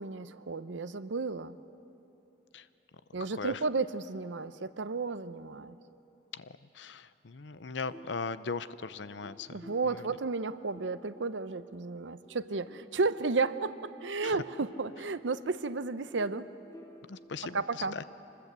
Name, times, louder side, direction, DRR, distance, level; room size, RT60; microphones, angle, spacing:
voice 1, 0.0-1.6 3.1-5.8 9.5-16.5 17.4-18.0, right 3 dB, 85° right, 13 dB, 0.7 m, -33 dB
voice 2, 6.3-9.6 14.2-14.3 17.1-18.0, left 4 dB, 70° left, 15 dB, 0.7 m, -39 dB
sound 1, 7.9-11.7 12.2-17.1, equal, 20° left, 2.4 m, -54 dB
25.5 x 20.5 x 8.2 m, 2.9 s
head